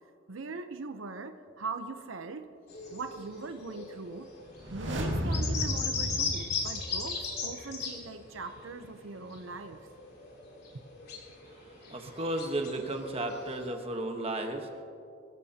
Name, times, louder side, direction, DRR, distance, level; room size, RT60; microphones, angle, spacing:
voice 1, 0.3-2.5 2.9-4.3 4.7-9.9, right 4 dB, 90° right, 8 dB, 0.8 m, -41 dB
sound 1, 2.7-8.1 8.4-13.7, left 5 dB, 50° left, 3.3 m, -38 dB
sound 2, 4.5-7.4 7.7-7.8, equal, 65° right, 2.3 m, -33 dB
voice 2, 11.5-14.8, right 1 dB, 30° right, 4 dB, 1.2 m, -34 dB
22.5 x 15.5 x 2.9 m, 2.5 s
head